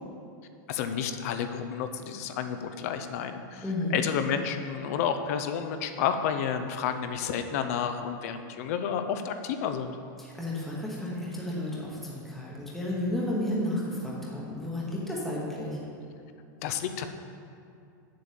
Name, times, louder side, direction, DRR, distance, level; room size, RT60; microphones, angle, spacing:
voice 1, 0.7-3.6 3.9-10.0 16.6-17.0, left 8 dB, 50° left, 8 dB, 0.7 m, -30 dB
voice 2, 3.6-4.0 10.2-15.8, left 1 dB, ahead, -5 dB, 1.1 m, -32 dB
7.6 x 6.9 x 7.4 m, 2.5 s
supercardioid pair, 170°, 11 cm